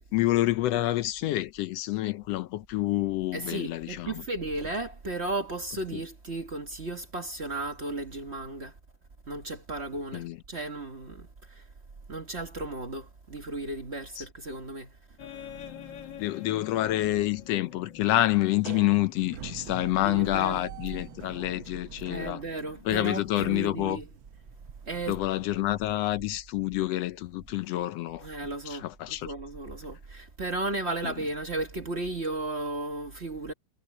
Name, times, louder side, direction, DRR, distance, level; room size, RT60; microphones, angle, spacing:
voice 1, 0.1-4.2 5.9-6.0 10.1-10.4 14.2-14.3 16.2-22.4 22.8-24.0 25.1-28.3 28.6-29.3 31.0-31.1, left 15 dB, 75° left, 1.5 m, -28 dB
voice 2, 3.3-8.7 9.3-11.6 12.1-14.9 20.0-20.6 22.1-24.1 24.9-25.2 28.2-33.5, right 2 dB, 50° right, 0.8 m, -35 dB
sound 1, 15.2-24.1, left 9 dB, 55° left, 1.5 m, -48 dB
sound 2, 18.3-25.9, right 10 dB, 85° right, 1.1 m, -45 dB
omnidirectional pair, 3.3 m